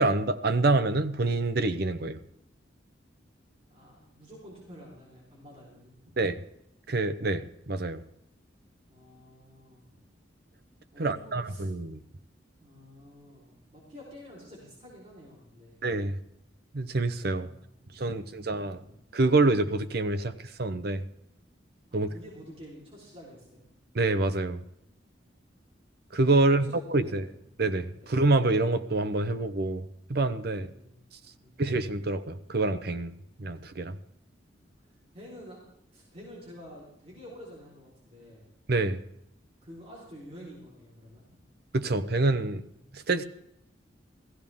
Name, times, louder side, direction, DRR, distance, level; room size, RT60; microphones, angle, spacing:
voice 1, 0.0-2.2 6.2-6.4 6.9-8.0 11.0-12.0 15.8-16.2 16.7-17.5 18.0-18.8 19.1-21.0 21.9-22.1 23.9-24.6 26.1-27.3 27.6-29.8 30.1-30.7 31.6-33.1 33.4-34.0 38.7-39.0 41.7-42.6 42.9-43.2, right 2 dB, 60° right, 12 dB, 0.8 m, -26 dB
voice 2, 3.7-6.1 8.9-9.9 10.9-11.7 12.6-15.8 17.3-19.0 21.9-23.6 26.4-27.3 28.0-28.1 30.5-31.1 31.4-31.6 35.1-35.6 35.9-38.5 39.6-41.2, equal, 35° right, -6 dB, 4.0 m, -49 dB
15.5 x 15.5 x 3.6 m, 0.78 s
head